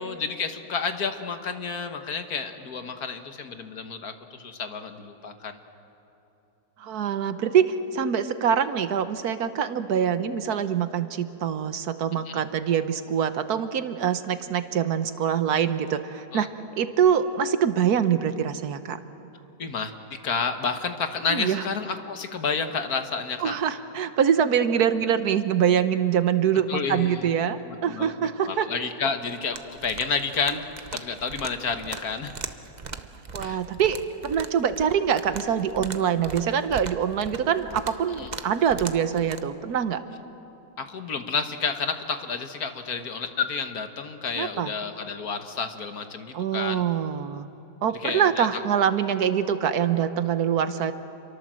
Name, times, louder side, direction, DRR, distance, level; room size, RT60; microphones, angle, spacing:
voice 1, 0.0-5.6 12.2-12.3 16.3-16.5 19.6-23.5 26.7-27.2 27.6-30.7 30.9-32.4 33.4-33.6 38.2-38.3 40.8-46.8 48.0-48.5, left 5 dB, 65° left, 7 dB, 1.8 m, -30 dB
voice 2, 6.8-16.5 16.8-19.0 21.3-21.7 23.4-28.7 33.3-40.0 44.3-44.7 46.3-47.5 47.8-50.9, right 8 dB, 70° right, 11 dB, 1.5 m, -24 dB
sound 1, 29.5-39.4, right 5 dB, 35° right, 0.7 m, -40 dB
28.0 x 23.5 x 7.6 m, 2.9 s
omnidirectional pair, 1.7 m